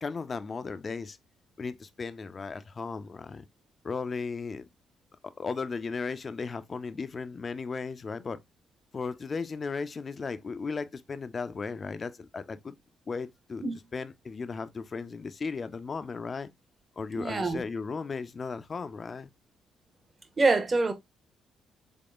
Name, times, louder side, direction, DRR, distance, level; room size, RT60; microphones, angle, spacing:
voice 1, 0.0-1.2 1.6-3.4 3.8-4.7 5.4-8.4 8.9-12.7 13.1-13.6 13.9-16.5 17.0-19.3, left 4 dB, 35° left, 0.5 m, -36 dB
voice 2, 17.2-17.6 20.4-20.9, right 3 dB, 30° right, 0.9 m, -25 dB
3.7 x 3.6 x 2.4 m
cardioid pair, 90°, 0 cm